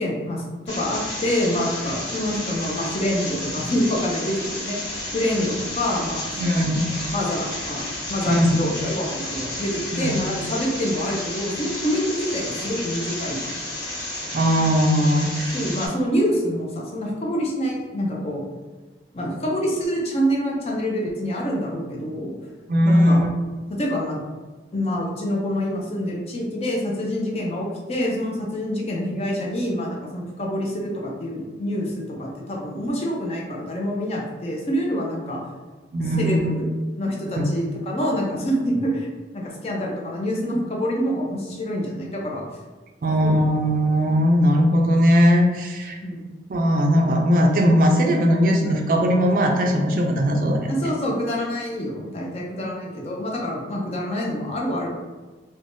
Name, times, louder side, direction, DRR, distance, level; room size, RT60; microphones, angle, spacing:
voice 1, 0.0-4.8 5.1-6.6 6.9-13.4 15.5-18.4 19.1-22.3 22.8-23.2 23.7-24.2 24.7-35.4 36.2-36.7 37.0-42.4 43.2-43.5 46.0-46.3 50.7-54.9, equal, 35° left, -2 dB, 0.5 m, -26 dB
sound 1, 0.7-15.9, left 1 dB, 75° left, 1.1 m, -32 dB
voice 2, 6.4-6.9 8.2-8.6 9.9-10.1 14.3-15.6 22.7-23.3 35.9-36.5 37.4-37.5 43.0-46.0 46.5-50.7, equal, 50° right, 2 dB, 0.3 m, -19 dB
3.2 x 2.1 x 2.6 m, 1.3 s
head